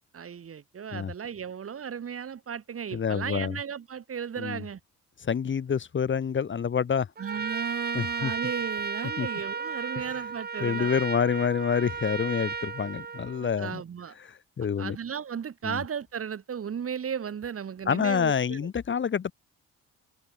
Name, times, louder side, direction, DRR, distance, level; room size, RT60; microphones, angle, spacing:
voice 1, 0.1-4.8 7.2-10.9 13.4-14.2 14.8-18.7, right 7 dB, 50° right, 3.0 m, -35 dB
voice 2, 2.9-3.6 4.4-4.6 5.2-7.1 7.9-8.3 9.2-9.3 10.6-13.8 14.2-15.0 15.6-15.8 17.9-19.3, left 7 dB, 40° left, 1.3 m, -27 dB
Trumpet, 7.2-13.7, right 5 dB, 30° right, 1.9 m, -34 dB
cardioid pair, 90°, 30 cm